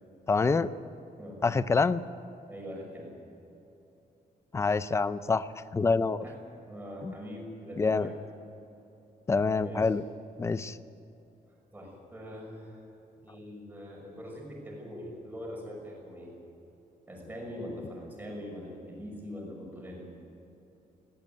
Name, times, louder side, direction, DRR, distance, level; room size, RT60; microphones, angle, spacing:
voice 1, 0.3-0.7 1.4-2.0 4.5-6.2 7.0-7.1 7.8-8.1 9.3-10.0 10.4-10.8, left 4 dB, 20° left, 14 dB, 0.5 m, -26 dB
voice 2, 2.5-3.1 6.2-6.4 6.7-8.1 9.6-9.9 11.7-12.8 13.2-16.3 17.1-20.1, equal, 10° right, -2 dB, 6.0 m, -42 dB
18.5 x 17.5 x 9.4 m, 3.0 s
cardioid pair, 180°, 15 cm